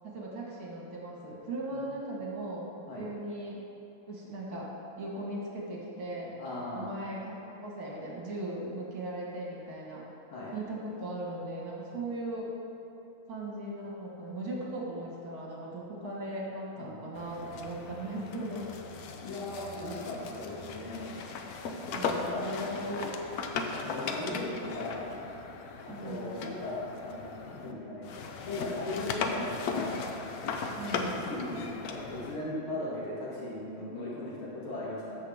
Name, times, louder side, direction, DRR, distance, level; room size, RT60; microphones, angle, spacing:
voice 1, 0.0-2.7 3.0-3.6 4.1-4.7 5.0-6.4 6.7-10.0 10.5-12.5 13.3-18.7 21.9-23.1 25.9-26.3 30.8-31.3, right 1 dB, 50° right, -4 dB, 1.9 m, -38 dB
voice 2, 6.4-6.9 10.3-10.5 16.8-16.9 19.2-21.1 22.0-22.4 23.7-25.1 25.8-28.1 28.5-30.0 30.8-35.2, left 2 dB, 90° left, -7 dB, 3.2 m, -38 dB
sound 1, 17.1-27.7 28.0-32.4, left 4 dB, 65° left, 0.9 m, -37 dB
13.5 x 6.8 x 3.5 m, 2.9 s
omnidirectional pair, 2.2 m